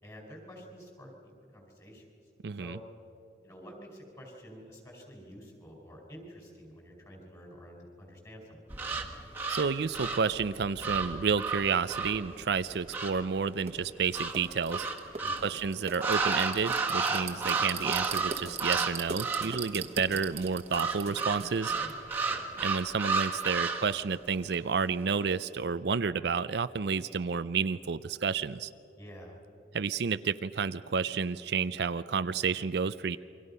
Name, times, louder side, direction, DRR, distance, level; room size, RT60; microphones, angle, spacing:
voice 1, 0.0-2.0 2.6-2.8 3.4-8.8 15.2-15.6 21.8-22.4 29.0-29.4, equal, 20° left, 1 dB, 4.6 m, -49 dB
voice 2, 2.4-2.8 9.5-14.9 15.4-21.7 22.6-28.7 29.7-33.2, right 5 dB, 60° right, 13 dB, 0.4 m, -30 dB
sound 1, 8.7-13.3 14.1-15.5 16.0-18.9 19.2-19.6 20.7-24.0, right 4 dB, 10° right, 1.6 m, -32 dB
sound 2, 13.7-13.8 14.3-22.0, right 5 dB, 35° right, 1.2 m, -40 dB
28.5 x 24.0 x 5.5 m, 2.8 s
head